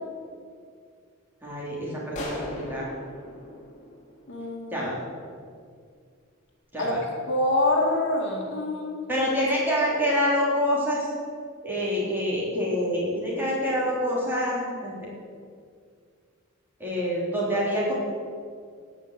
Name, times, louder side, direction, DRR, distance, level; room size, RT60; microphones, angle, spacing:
voice 1, 1.4-2.9 4.7-5.0 6.7-7.0 9.1-11.1 11.6-14.9 16.8-17.9, equal, 10° right, -6 dB, 3.8 m, -26 dB
sound 1, 2.1-4.7, left 1 dB, 35° left, 2.7 m, -38 dB
voice 2, 4.3-4.8 6.8-9.0, left 1 dB, 60° left, -1 dB, 2.3 m, -26 dB
17.0 x 5.9 x 8.3 m, 2.2 s
head